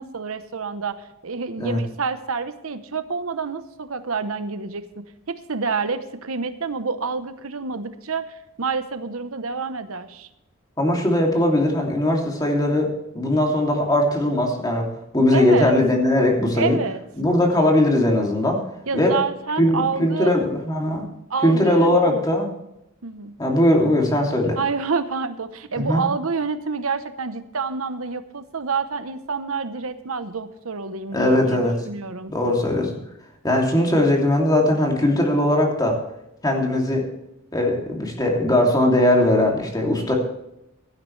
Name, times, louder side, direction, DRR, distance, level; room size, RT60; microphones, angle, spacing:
voice 1, 0.0-4.8 5.3-10.3 15.3-15.7 16.5-17.0 18.9-20.4 21.3-22.2 23.0-23.3 24.6-32.3, right 5 dB, 80° right, 11 dB, 0.9 m, -28 dB
voice 2, 10.8-16.8 17.2-18.6 18.9-19.1 19.6-21.0 21.4-22.5 23.4-24.6 25.8-26.0 31.1-31.7 32.3-32.9 33.4-36.0 36.4-37.1 37.5-40.1, left 1 dB, 20° left, 0 dB, 2.7 m, -20 dB
16.5 x 12.0 x 3.3 m, 0.86 s
head